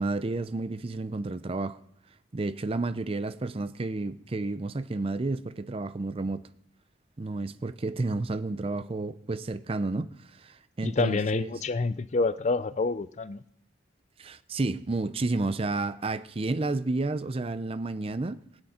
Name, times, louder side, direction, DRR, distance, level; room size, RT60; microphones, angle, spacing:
voice 1, 0.0-1.8 2.3-6.4 7.2-11.5 14.2-18.4, right 2 dB, 30° right, 0.5 m, -31 dB
voice 2, 10.8-13.4, left 3 dB, 35° left, 0.4 m, -27 dB
19.0 x 7.9 x 4.3 m
head